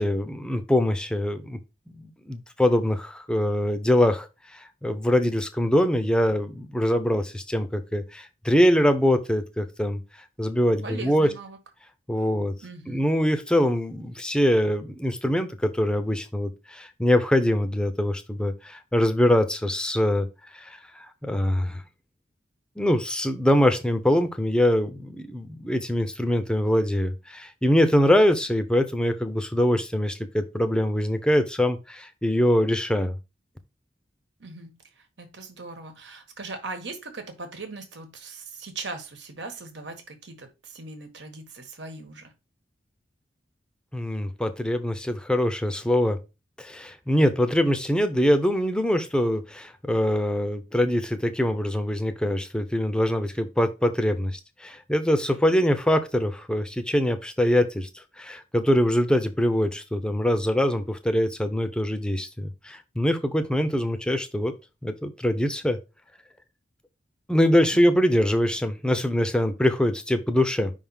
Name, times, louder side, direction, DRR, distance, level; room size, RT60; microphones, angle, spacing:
voice 1, 0.0-1.6 1.9-4.3 4.5-10.0 10.4-11.3 12.1-12.5 12.9-20.3 20.5-20.8 21.2-21.8 22.8-33.2 43.9-46.2 46.6-57.9 58.2-64.5 64.8-65.8 67.3-70.7, left 1 dB, 5° left, 0.7 m, -23 dB
voice 2, 10.8-11.6 12.6-13.0 34.4-42.3 67.7-68.0, right 3 dB, 70° right, 1.4 m, -39 dB
5.4 x 3.6 x 5.5 m
head